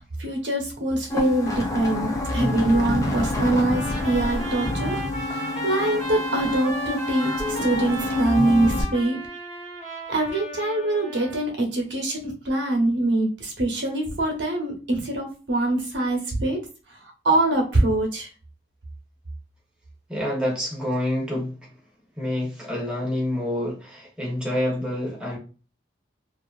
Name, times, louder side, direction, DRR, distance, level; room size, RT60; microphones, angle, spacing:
voice 1, 0.2-5.0 5.3-9.2 10.1-16.6 17.2-18.3, right 2 dB, 65° right, 1 dB, 0.9 m, -24 dB
sound 1, 1.1-8.8, left 2 dB, 15° left, 0.4 m, -28 dB
Trumpet, 3.6-11.5, right 1 dB, 35° left, 1.2 m, -34 dB
voice 2, 20.1-21.6 22.2-25.4, left 1 dB, 5° right, -4 dB, 0.9 m, -27 dB
2.7 x 2.5 x 2.4 m, 0.34 s
head